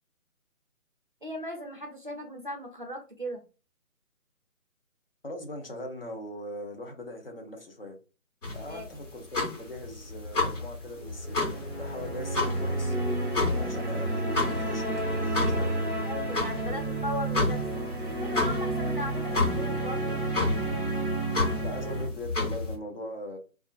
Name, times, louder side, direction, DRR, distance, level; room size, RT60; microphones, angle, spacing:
voice 1, 1.2-3.4 8.6-8.9 16.0-17.9 18.2-20.2, equal, 35° right, 0.4 m, -37 dB
voice 2, 5.2-8.0 8.5-13.0 13.6-15.8 21.6-23.4, left 1 dB, 40° left, 0.6 m, -41 dB
sound 1, 8.4-22.7, left 3 dB, 60° left, 1.5 m, -31 dB
sound 2, 11.0-22.1, right 2 dB, 20° left, 1.0 m, -31 dB
2.4 x 2.3 x 2.3 m
figure-of-eight pair, 160°, 44 cm